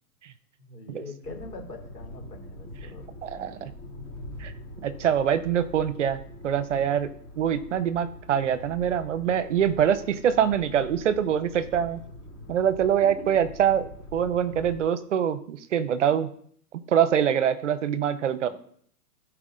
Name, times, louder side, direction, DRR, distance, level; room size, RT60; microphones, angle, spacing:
voice 1, 0.6-3.1 3.3-3.8 13.0-13.3 18.4-18.5, left 3 dB, 85° left, 0 dB, 3.6 m, -43 dB
sound 1, 1.2-14.8, left 1 dB, 15° left, 0.7 m, -44 dB
voice 2, 3.2-3.7 4.4-4.5 4.8-7.1 7.4-12.0 12.5-16.3 16.9-18.5, right 9 dB, 50° right, 14 dB, 0.7 m, -24 dB
13.5 x 4.8 x 3.8 m, 0.62 s
hypercardioid pair, 165°, 47 cm